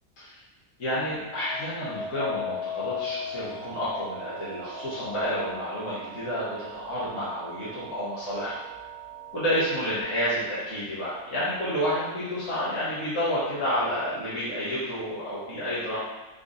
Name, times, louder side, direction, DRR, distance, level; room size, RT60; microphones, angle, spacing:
voice 1, 0.8-8.6 9.3-16.0, equal, 65° left, -12 dB, 1.4 m, -30 dB
sound 1, 1.0-10.2 10.7-11.2, left 6 dB, 70° right, 0.3 m, -39 dB
sound 2, 3.5-10.0, right 18 dB, 90° left, 1.3 m, -44 dB
3.8 x 2.8 x 2.5 m, 1.1 s
omnidirectional pair, 1.5 m